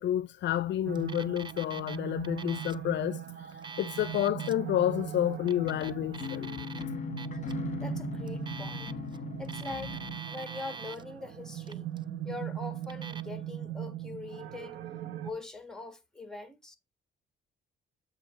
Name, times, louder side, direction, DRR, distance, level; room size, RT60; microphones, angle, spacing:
voice 1, 0.0-3.2 3.8-6.5, left 12 dB, 65° left, 0.4 m, -30 dB
sound 1, 0.9-15.3, right 11 dB, 65° right, 1.0 m, -40 dB
Alarm, 1.0-2.0 2.2-2.8 3.5-4.6 5.4-6.8 7.2-7.5 8.3-9.2 9.4-11.0 11.5-12.0 12.8-13.2, right 5 dB, 25° right, 0.4 m, -44 dB
sound 2, 5.6-10.2, left 8 dB, 40° left, 1.1 m, -39 dB
voice 2, 7.8-9.0 9.4-10.0 10.3-11.9 12.2-14.8 15.2-16.8, left 3 dB, 5° left, 1.5 m, -42 dB
7.8 x 2.8 x 5.6 m
cardioid pair, 90°, 20 cm